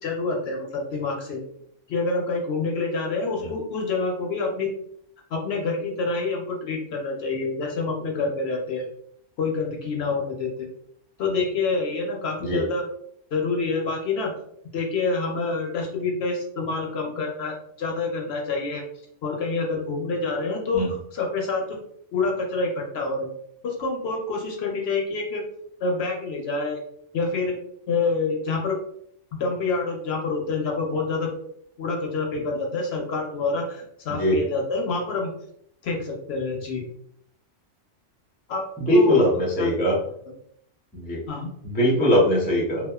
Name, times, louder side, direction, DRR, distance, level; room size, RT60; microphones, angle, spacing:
voice 1, 0.0-1.4 1.9-4.7 5.3-8.9 9.4-10.7 11.2-12.8 13.3-14.3 14.7-18.8 19.2-21.8 22.1-23.3 23.6-25.5 25.8-26.8 27.1-27.6 27.9-28.8 29.4-31.3 31.8-35.3 35.8-36.9 38.5-38.6 38.9-39.2 39.6-39.7 41.3-41.5, left 3 dB, 65° left, 1 dB, 0.7 m, -27 dB
voice 2, 38.8-40.0 40.9-41.2 41.6-42.9, equal, 15° left, -3 dB, 0.3 m, -21 dB
2.8 x 2.2 x 2.2 m, 0.68 s
omnidirectional pair, 1.3 m